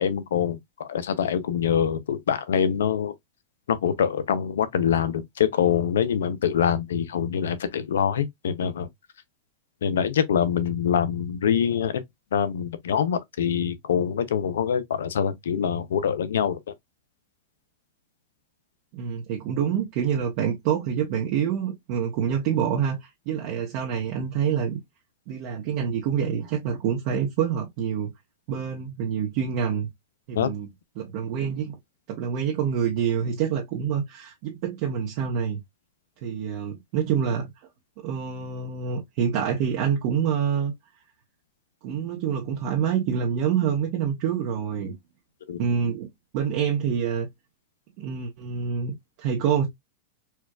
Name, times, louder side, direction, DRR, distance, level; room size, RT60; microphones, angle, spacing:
voice 1, 0.0-3.1 3.7-8.9 9.8-12.0 12.3-16.7 30.4-30.5 45.5-45.6, left 8 dB, 85° left, 0.6 m, -24 dB
voice 2, 18.9-24.8 25.3-28.1 28.5-29.9 30.3-30.7 31.0-31.7 32.1-35.6 36.2-37.5 38.0-40.7 41.8-45.0 45.6-47.3 48.0-49.7, right 8 dB, 55° right, 0.9 m, -26 dB
4.4 x 2.3 x 2.3 m
hypercardioid pair, 120°, 0 cm